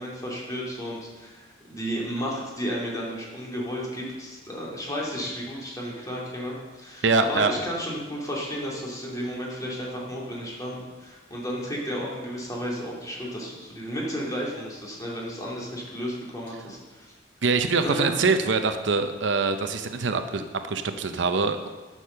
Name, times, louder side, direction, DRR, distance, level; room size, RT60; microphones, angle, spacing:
voice 1, 0.0-17.1 17.8-18.2, equal, 20° left, -4 dB, 2.5 m, -33 dB
voice 2, 7.0-7.5 17.4-21.7, right 4 dB, 70° right, 8 dB, 0.7 m, -24 dB
9.8 x 6.3 x 6.7 m, 1.3 s
head